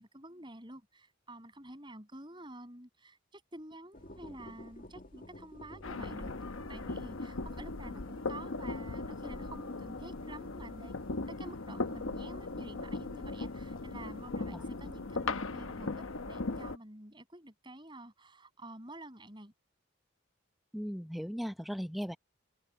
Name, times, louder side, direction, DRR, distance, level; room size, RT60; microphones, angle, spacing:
voice 1, 0.0-6.4 6.7-10.9 11.3-19.5, right 1 dB, 20° right, 7.9 m, -49 dB
sound 1, 3.9-14.3, left 1 dB, 40° left, 2.3 m, -55 dB
sound 2, 5.8-16.8, left 3 dB, 75° left, 1.0 m, -38 dB
voice 2, 20.7-22.2, equal, ahead, 1.0 m, -37 dB
head